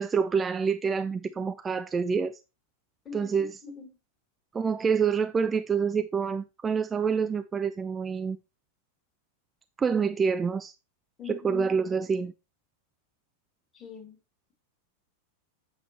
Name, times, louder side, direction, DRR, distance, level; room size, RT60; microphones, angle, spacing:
voice 1, 0.0-2.4 3.1-3.5 4.5-8.4 9.8-10.7 11.3-12.3, right 6 dB, 20° right, 0.3 m, -27 dB
voice 2, 3.0-3.9 11.2-11.7 13.7-14.2, left 6 dB, 25° left, 2.2 m, -42 dB
8.0 x 6.0 x 3.0 m
figure-of-eight pair, 90°, 0 cm